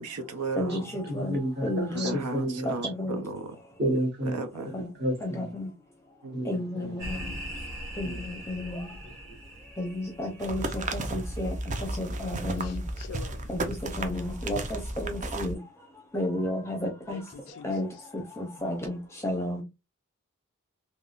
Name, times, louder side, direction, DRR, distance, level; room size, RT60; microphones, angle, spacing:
voice 1, 0.0-0.9 1.9-3.6 4.3-4.8 6.2-6.5, right 3 dB, 85° right, 0.7 m, -35 dB
voice 2, 0.6-2.2 2.8-3.2 4.7-4.9 5.2-5.7 6.5-7.2 8.0-8.8 9.8-10.6 10.9-11.5 12.0-12.8 14.0-15.6 16.1-17.2 17.6-17.9 18.4-19.0 19.2-19.6, left 1 dB, 10° left, 0.6 m, -32 dB
voice 3, 1.1-2.7 3.8-4.4 4.7-5.5 6.3-7.0 8.0-8.2 9.0-9.4, right 1 dB, 50° right, 1.3 m, -31 dB
sound 1, 7.0-10.9, equal, 15° right, 1.3 m, -40 dB
sound 2, 10.4-15.5, right 2 dB, 35° right, 0.5 m, -33 dB
voice 4, 12.6-13.5 17.1-18.0, left 6 dB, 80° left, 0.3 m, -46 dB
3.5 x 2.1 x 2.4 m
head